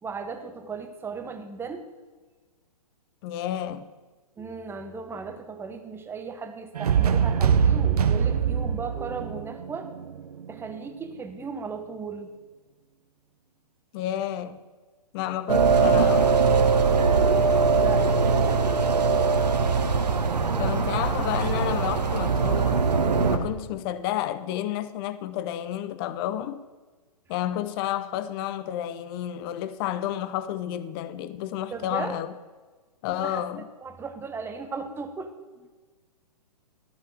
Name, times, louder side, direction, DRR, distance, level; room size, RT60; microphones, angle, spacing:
voice 1, 0.0-1.9 4.4-9.9 10.5-12.3 17.8-18.7 19.7-19.8 31.7-32.2 33.2-35.7, right 5 dB, 10° right, 1.0 m, -37 dB
voice 2, 3.2-3.9 13.9-14.6 15.1-16.3 20.6-22.9 23.3-26.6 27.3-32.3 33.0-33.6, left 12 dB, 35° left, 0.7 m, -30 dB
sound 1, 6.7-10.6, right 7 dB, 70° right, 0.9 m, -23 dB
sound 2, 15.5-23.4, right 4 dB, 85° right, 1.3 m, -21 dB
13.5 x 5.7 x 8.0 m
hypercardioid pair, 125°, 20 cm